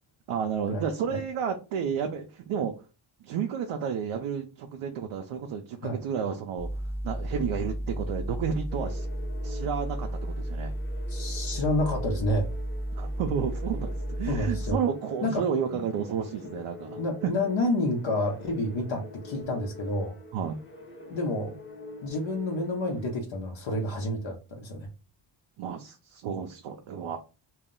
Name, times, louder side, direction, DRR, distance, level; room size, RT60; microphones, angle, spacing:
voice 1, 0.3-2.7 3.2-6.7 7.0-9.1 9.4-10.7 12.9-17.3 20.3-20.6 25.6-27.2, right 7 dB, 85° right, 3 dB, 0.6 m, -31 dB
sound 1, 6.6-14.7, right 1 dB, 5° right, 0.6 m, -33 dB
sound 2, 8.7-23.1, left 1 dB, 25° left, 0.9 m, -45 dB
voice 2, 11.1-12.5 14.3-14.8 15.2-15.4 17.0-20.1 21.1-21.6 22.0-24.9, left 1 dB, 65° left, 1 dB, 0.8 m, -29 dB
2.3 x 2.0 x 3.7 m, 0.31 s
cardioid pair, 75°, 49 cm